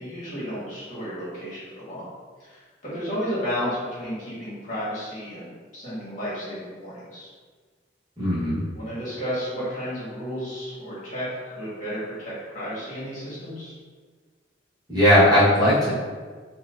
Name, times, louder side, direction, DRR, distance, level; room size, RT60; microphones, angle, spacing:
voice 1, 0.0-2.1 2.4-2.6 2.9-7.3 8.7-13.7, equal, 45° left, -10 dB, 1.4 m, -32 dB
voice 2, 8.2-8.6 14.9-15.9, equal, 20° right, -11 dB, 1.1 m, -18 dB
4.3 x 2.2 x 2.5 m, 1.5 s
head